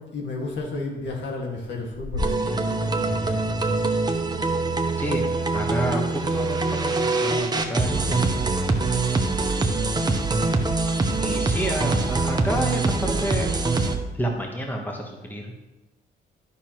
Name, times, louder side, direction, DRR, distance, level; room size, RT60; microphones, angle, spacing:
voice 1, 0.0-3.8, left 2 dB, 65° left, -1 dB, 1.9 m, -31 dB
sound 1, 2.2-13.9, right 3 dB, 20° right, 0.8 m, -24 dB
voice 2, 5.0-5.3 5.5-8.4 11.2-13.5 14.1-15.5, equal, 10° left, 1 dB, 1.1 m, -30 dB
10.0 x 6.1 x 3.0 m, 1.1 s
cardioid pair, 90°, 20 cm